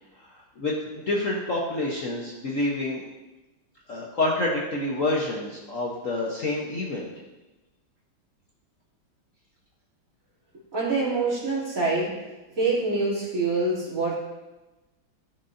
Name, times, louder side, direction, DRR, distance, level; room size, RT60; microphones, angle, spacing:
voice 1, 0.3-3.0 3.9-7.1, left 2 dB, 50° left, -4 dB, 1.1 m, -28 dB
voice 2, 10.7-12.1 12.5-14.1, right 3 dB, 40° right, -8 dB, 3.3 m, -25 dB
14.0 x 6.0 x 2.7 m, 1.1 s
omnidirectional pair, 2.2 m